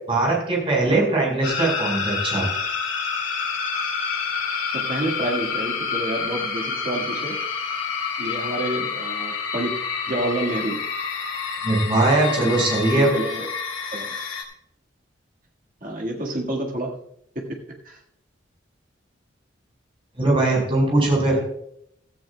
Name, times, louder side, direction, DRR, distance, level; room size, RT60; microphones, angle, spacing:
voice 1, 0.0-2.4 11.6-13.1 20.2-21.4, right 2 dB, 30° right, -2 dB, 4.7 m, -20 dB
sound 1, 1.4-14.4, left 5 dB, 90° left, 2.2 m, -28 dB
voice 2, 4.7-7.4 8.2-9.8 10.1-10.8 12.3-12.6 13.0-13.5 13.9-14.1 15.8-17.0 17.4-17.6 17.8-18.0, right 1 dB, 45° right, 0 dB, 1.8 m, -29 dB
16.5 x 13.0 x 2.3 m, 0.73 s
head